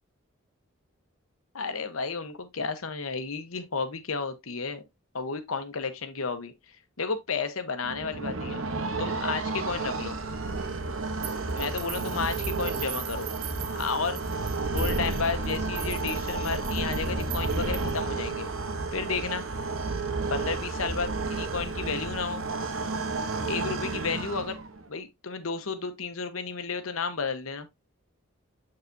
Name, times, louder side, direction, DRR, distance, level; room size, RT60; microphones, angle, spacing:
voice 1, 1.5-4.8 5.1-6.5 7.0-8.6 9.0-10.2 11.5-13.3 13.7-14.2 14.7-18.5 18.9-19.4 20.3-22.4 23.5-24.6 24.9-27.7, left 5 dB, 85° left, 1.1 m, -32 dB
sound 1, 7.8-24.8, right 3 dB, 75° right, 1.0 m, -31 dB
sound 2, 11.2-18.1, right 13 dB, 60° right, 0.7 m, -41 dB
7.5 x 4.8 x 2.7 m
head